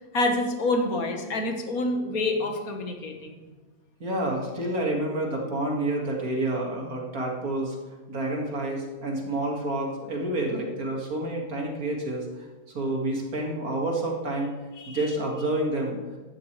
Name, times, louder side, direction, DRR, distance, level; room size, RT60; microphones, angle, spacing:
voice 1, 0.1-3.4 14.8-15.0, left 2 dB, 85° left, 4 dB, 1.9 m, -27 dB
voice 2, 4.0-7.8 8.1-12.3 12.7-14.5 14.9-16.0, right 1 dB, 80° right, 0 dB, 2.5 m, -28 dB
14.5 x 11.5 x 3.3 m, 1.3 s
omnidirectional pair, 1.5 m